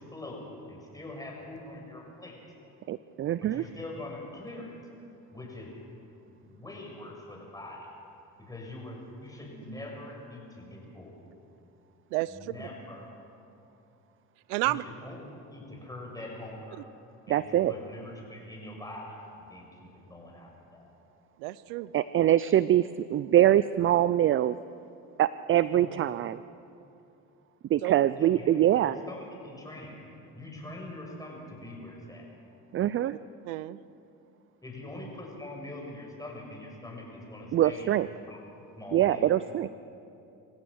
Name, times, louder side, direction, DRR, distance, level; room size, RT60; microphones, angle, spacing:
voice 1, 0.0-2.4 3.4-4.7 5.3-5.7 6.4-7.9 8.4-11.2 12.3-13.1 14.6-15.2 15.5-16.8 17.3-20.9 25.7-25.9 28.2-28.6 28.8-29.9 30.3-32.3 34.6-38.4 38.8-39.2, left 1 dB, 10° left, -1 dB, 6.8 m, -43 dB
voice 2, 2.9-3.6 17.3-17.7 21.9-24.6 25.2-26.4 27.7-28.9 32.7-33.1 37.5-38.1 38.9-39.7, right 12 dB, 35° right, 16 dB, 0.4 m, -24 dB
voice 3, 12.1-12.5 14.5-14.8 21.4-21.9 27.8-27.9 33.4-33.8, right 19 dB, 85° right, 18 dB, 0.6 m, -30 dB
26.5 x 16.0 x 6.4 m, 2.7 s
supercardioid pair, 90°, 37 cm